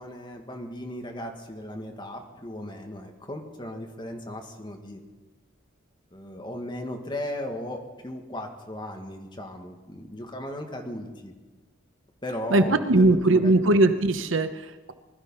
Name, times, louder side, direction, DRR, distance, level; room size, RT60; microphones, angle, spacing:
voice 1, 0.0-5.0 6.1-11.4 12.2-13.5, left 1 dB, 25° left, 3 dB, 1.7 m, -36 dB
voice 2, 12.5-14.9, right 2 dB, 80° right, 9 dB, 1.0 m, -20 dB
20.0 x 13.0 x 5.6 m, 1.2 s
head